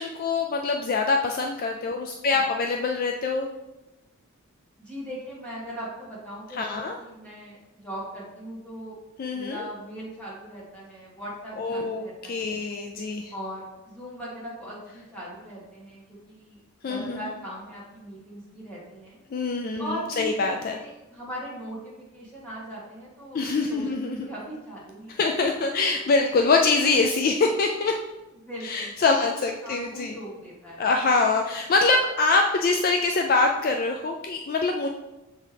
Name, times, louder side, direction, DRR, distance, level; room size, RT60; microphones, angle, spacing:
voice 1, 0.0-3.5 6.5-7.0 9.2-9.7 11.6-13.3 16.8-17.2 19.3-20.8 23.3-24.3 25.2-28.0 28.6-30.1 30.8-34.9, left 3 dB, 40° left, 3 dB, 0.3 m, -24 dB
voice 2, 4.8-8.9 9.3-12.6 13.3-19.2 19.8-23.4 23.7-25.6 28.4-29.3 29.6-30.9, equal, 5° left, -7 dB, 1.9 m, -39 dB
7.0 x 4.6 x 3.4 m, 1.0 s
head